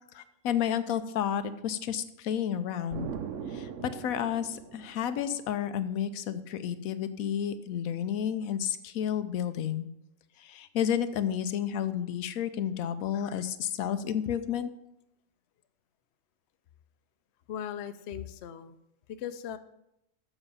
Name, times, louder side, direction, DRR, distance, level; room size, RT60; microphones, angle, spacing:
voice 1, 0.1-3.1 3.5-9.9 10.4-14.7, left 9 dB, 85° left, 11 dB, 1.0 m, -31 dB
Explosion, 2.9-5.6, right 7 dB, 65° right, 0.9 m, -40 dB
voice 2, 17.5-18.8 19.1-19.6, left 9 dB, 60° left, 10 dB, 0.8 m, -38 dB
7.2 x 6.8 x 5.5 m, 0.82 s
omnidirectional pair, 1.5 m